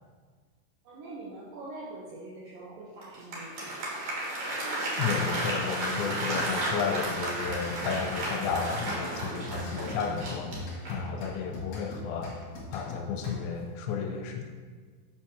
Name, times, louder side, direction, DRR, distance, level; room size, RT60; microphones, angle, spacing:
voice 1, 0.8-4.0, right 2 dB, 75° right, -6 dB, 2.0 m, -44 dB
Applause, 3.0-11.1, right 1 dB, 55° right, 2.3 m, -33 dB
voice 2, 5.0-10.6 10.9-12.3 12.7-14.4, left 6 dB, 85° left, 3 dB, 2.9 m, -32 dB
sound 1, 7.0-13.7, left 2 dB, 55° left, 2.8 m, -41 dB
8.0 x 3.7 x 6.1 m, 1.5 s
omnidirectional pair, 5.3 m